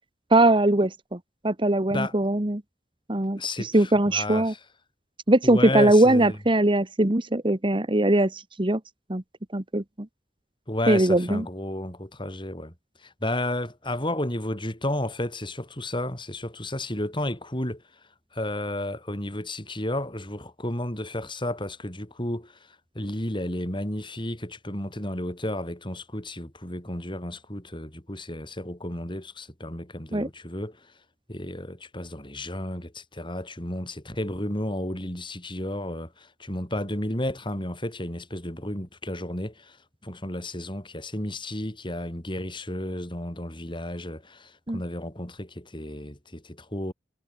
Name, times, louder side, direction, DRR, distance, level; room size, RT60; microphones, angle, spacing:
voice 1, 0.3-1.2 1.4-2.6 3.1-4.5 5.3-8.8 9.1-9.2 9.5-9.8 10.9-11.4 30.1-30.3 44.7-44.8, right 1 dB, 30° right, 1.5 m, -21 dB
voice 2, 3.4-4.6 5.4-6.4 10.7-12.7 13.0-17.8 18.3-30.9 31.3-39.8 40.0-46.9, left 1 dB, 25° left, 7.3 m, -32 dB
head